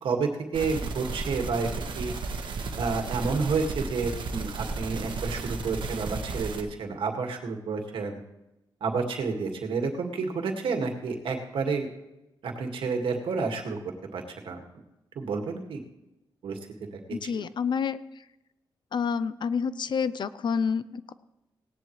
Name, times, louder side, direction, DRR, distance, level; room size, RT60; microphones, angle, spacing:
voice 1, 0.0-2.1 2.8-8.2 8.8-11.9 12.4-13.8 14.1-14.6 15.2-15.8 16.4-16.6 17.2-17.3, right 4 dB, 90° right, 3 dB, 2.0 m, -30 dB
sound 1, 0.5-6.6, right 4 dB, 70° right, 1.6 m, -34 dB
voice 2, 17.1-18.0 18.9-21.1, left 6 dB, 60° left, 15 dB, 0.6 m, -28 dB
17.5 x 10.5 x 3.2 m, 0.93 s
cardioid pair, 100°, 9 cm